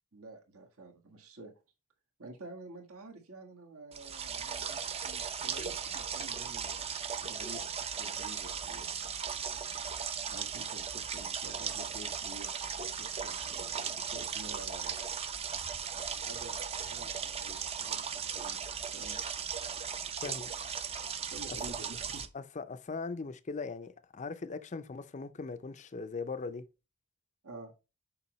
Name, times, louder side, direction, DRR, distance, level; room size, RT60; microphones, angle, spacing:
voice 1, 0.1-1.5 2.2-6.9 7.2-9.1 10.3-12.5 13.0-15.0 16.2-18.6 18.9-19.3 21.2-22.3 27.4-27.7, right 2 dB, 75° right, 1.6 m, -50 dB
sound 1, 3.9-22.3, right 7 dB, 25° right, 0.5 m, -37 dB
voice 2, 20.2-20.5 21.5-21.6 22.3-26.7, left 4 dB, 30° left, 0.5 m, -40 dB
6.9 x 5.2 x 3.1 m
head